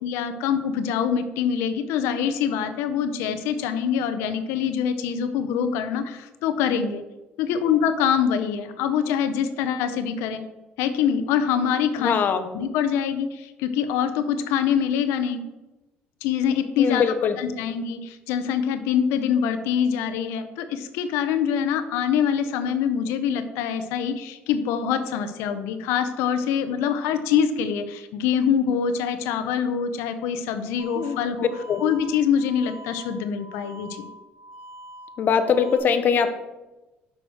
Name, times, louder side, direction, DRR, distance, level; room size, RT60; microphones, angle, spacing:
voice 1, 0.0-7.0 7.4-10.4 10.8-12.1 12.5-15.4 16.2-17.0 17.4-31.5 31.8-34.1, left 8 dB, 90° left, 9 dB, 0.6 m, -24 dB
voice 2, 12.0-12.5 16.8-17.4 31.0-31.2 31.7-31.8 35.2-36.3, left 6 dB, 45° left, 9 dB, 0.7 m, -21 dB
sound 1, 30.8-35.8, right 1 dB, 70° right, 2.3 m, -44 dB
6.2 x 4.8 x 6.2 m, 1.1 s
cardioid pair, 120°, 4 cm